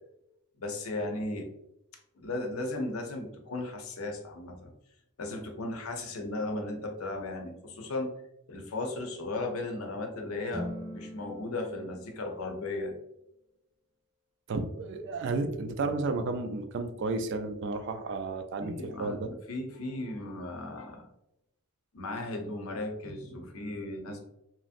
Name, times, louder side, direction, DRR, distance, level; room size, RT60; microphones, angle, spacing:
voice 1, 0.6-1.5 2.2-4.7 5.2-8.2 8.5-13.0 18.6-21.1 21.9-24.2, left 2 dB, 70° left, 2 dB, 0.6 m, -36 dB
sound 1, 10.5-12.9, equal, 15° left, 0.5 m, -42 dB
voice 2, 14.5-19.3, right 3 dB, 55° right, 6 dB, 0.3 m, -32 dB
3.0 x 2.6 x 2.4 m, 0.83 s
head